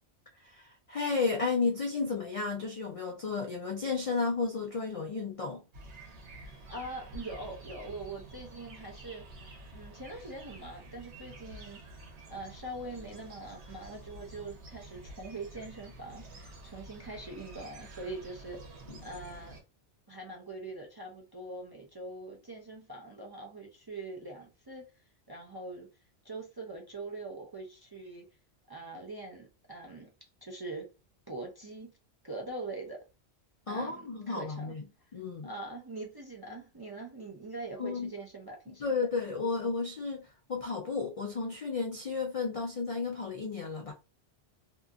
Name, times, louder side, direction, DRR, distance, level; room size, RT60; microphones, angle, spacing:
voice 1, 0.4-5.6 18.9-19.0 33.7-34.8 35.1-35.5 37.8-38.1 38.8-43.9, left 4 dB, 70° left, 0.3 m, -33 dB
sound 1, 5.7-19.6, right 2 dB, 70° right, 1.1 m, -49 dB
voice 2, 6.4-9.3 9.7-11.8 12.3-18.6 19.0-19.6 20.1-24.8 25.3-25.9 26.2-28.3 28.7-30.1 30.4-30.9 31.3-31.9 32.2-33.0 33.7-34.8 35.4-38.8, right 2 dB, 35° right, 0.3 m, -43 dB
2.7 x 2.5 x 2.3 m
omnidirectional pair, 1.2 m